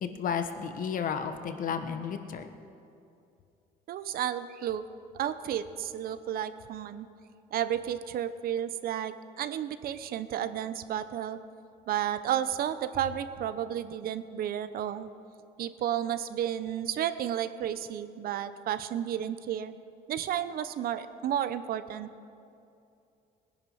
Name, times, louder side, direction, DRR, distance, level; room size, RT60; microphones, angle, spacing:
voice 1, 0.0-2.5, left 7 dB, 55° left, 8 dB, 1.2 m, -32 dB
voice 2, 3.9-4.8 5.1-7.1 7.5-11.4 11.9-15.1 15.6-19.7 20.1-22.1, right 10 dB, 60° right, 12 dB, 0.7 m, -32 dB
19.0 x 10.5 x 5.7 m, 2.6 s
cardioid pair, 110°, 17 cm